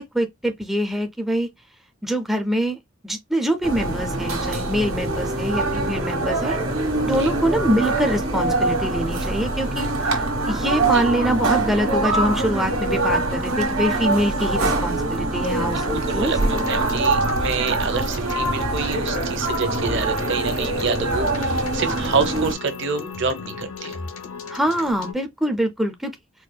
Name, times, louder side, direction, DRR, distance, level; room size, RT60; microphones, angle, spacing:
voice 1, 0.0-1.5 2.0-6.6 7.1-16.3 24.5-26.1, equal, ahead, 0.4 m, -24 dB
sound 1, 3.6-22.5, right 2 dB, 75° right, 1.2 m, -24 dB
voice 2, 15.9-24.0, right 5 dB, 60° right, 0.8 m, -27 dB
sound 2, 16.2-25.1, left 4 dB, 85° left, 0.8 m, -34 dB
4.3 x 2.3 x 2.2 m
head